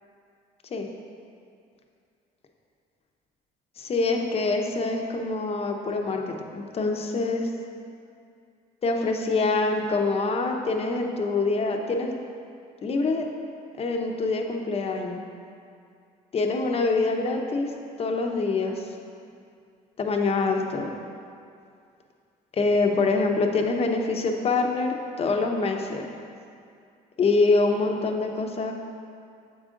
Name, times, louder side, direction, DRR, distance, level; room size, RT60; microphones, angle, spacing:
voice 1, 3.8-6.2 6.5-7.5 8.8-12.1 12.8-13.3 13.8-15.2 16.3-17.7 18.0-18.8 20.0-20.9 22.5-26.1 27.2-28.7, left 3 dB, 35° left, 2 dB, 0.7 m, -25 dB
7.2 x 5.1 x 3.7 m, 2.4 s
cardioid pair, 110°, 17 cm